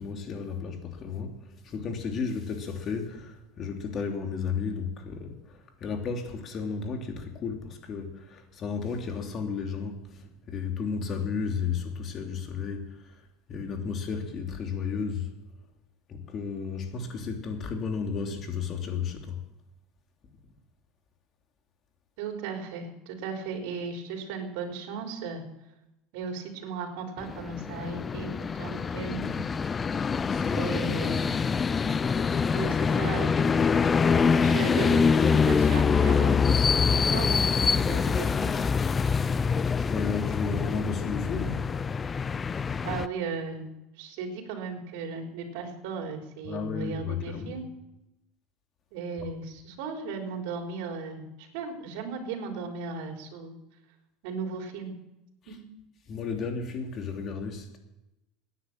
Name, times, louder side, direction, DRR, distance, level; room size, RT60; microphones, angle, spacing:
voice 1, 0.0-1.4 1.6-10.0 10.5-12.9 13.5-15.3 16.1-19.4 30.3-30.7 39.8-41.6 46.4-47.6 49.2-49.3 56.1-57.8, left 5 dB, 40° left, 3 dB, 3.0 m, -33 dB
voice 2, 22.2-25.4 26.1-29.5 30.5-31.4 32.5-33.4 34.4-37.5 37.8-38.5 42.8-43.7 44.0-47.7 48.9-51.2 51.5-53.5 54.2-54.9 55.5-55.6, right 5 dB, 75° right, 3 dB, 4.0 m, -36 dB
sound 1, 27.2-43.1, left 5 dB, 20° left, 0.4 m, -25 dB
17.5 x 10.0 x 7.4 m, 0.89 s
supercardioid pair, 125°, 0 cm